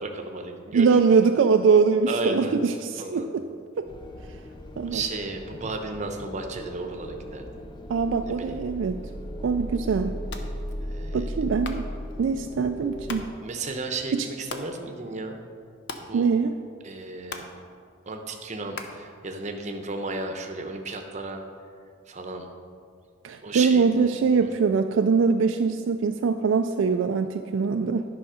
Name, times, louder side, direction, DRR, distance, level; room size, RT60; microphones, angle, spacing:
voice 1, 0.0-1.0 2.1-2.5 3.0-3.3 4.9-7.5 8.2-8.6 10.9-11.3 13.4-15.4 16.0-16.3 16.8-17.5 18.1-21.4 22.1-22.5 23.4-24.1, right 3 dB, 35° right, 4 dB, 0.8 m, -34 dB
voice 2, 0.7-3.5 3.8-3.9 4.8-5.0 7.9-9.1 9.4-10.2 11.1-11.9 12.2-13.3 14.1-14.3 16.1-16.6 23.2-28.1, right 5 dB, 60° right, 6 dB, 0.3 m, -22 dB
sound 1, 3.9-13.4, equal, 20° left, 0.4 m, -37 dB
sound 2, 10.2-19.9, left 4 dB, 55° left, 0.7 m, -44 dB
10.5 x 5.7 x 5.0 m, 2.3 s
head